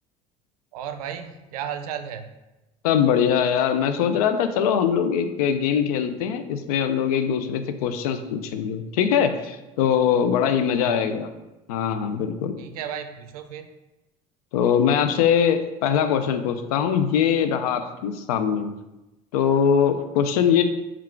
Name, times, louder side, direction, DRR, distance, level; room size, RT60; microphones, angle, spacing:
voice 1, 0.7-2.3 10.8-11.1 12.6-13.7, right 8 dB, 80° right, 9 dB, 0.4 m, -34 dB
voice 2, 2.8-11.3 11.7-12.5 14.5-18.7 19.3-20.6, left 8 dB, 80° left, 9 dB, 0.4 m, -22 dB
3.7 x 2.3 x 4.3 m, 1.0 s
hypercardioid pair, 70°, 19 cm